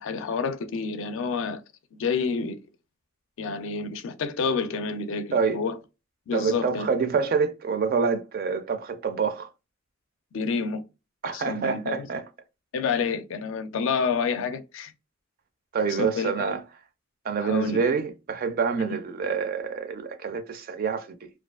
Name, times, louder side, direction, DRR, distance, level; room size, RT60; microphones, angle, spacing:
voice 1, 0.0-1.6 1.9-2.6 3.4-5.8 6.3-6.9 10.3-10.8 11.3-12.1 12.7-14.9 16.0-16.3 17.4-17.8 18.8-19.0, left 5 dB, 70° left, 0.4 m, -28 dB
voice 2, 6.3-9.5 11.2-12.3 15.7-16.6 17.2-21.3, right 5 dB, 45° right, 0.4 m, -27 dB
2.4 x 2.3 x 2.2 m
head